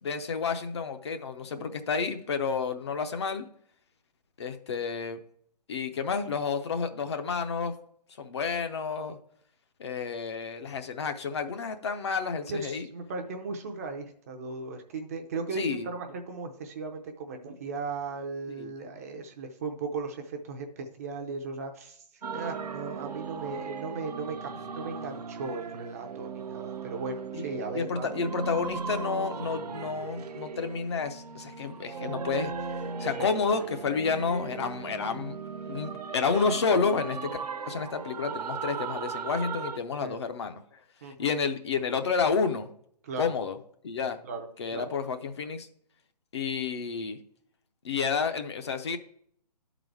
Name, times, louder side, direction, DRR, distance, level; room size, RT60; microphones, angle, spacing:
voice 1, 0.0-3.5 4.4-5.2 5.7-7.7 8.2-9.2 9.8-12.9 15.5-15.9 18.6-18.7 27.3-27.5 27.7-32.5 33.0-35.4 35.7-37.4 37.7-40.6 41.2-42.7 43.2-43.6 43.8-44.2 44.6-45.7 46.3-47.2 47.8-49.0, left 5 dB, 40° left, 7 dB, 0.6 m, -30 dB
voice 2, 12.5-22.0 22.3-28.1 33.1-33.4 40.0-40.2 41.0-41.1 43.0-43.3 44.2-44.5 44.7-44.9, right 4 dB, 20° right, 4 dB, 0.5 m, -37 dB
sound 1, 22.2-39.8, right 5 dB, 65° right, 0.7 m, -37 dB
10.5 x 4.0 x 4.5 m, 0.65 s
hypercardioid pair, 160°, 21 cm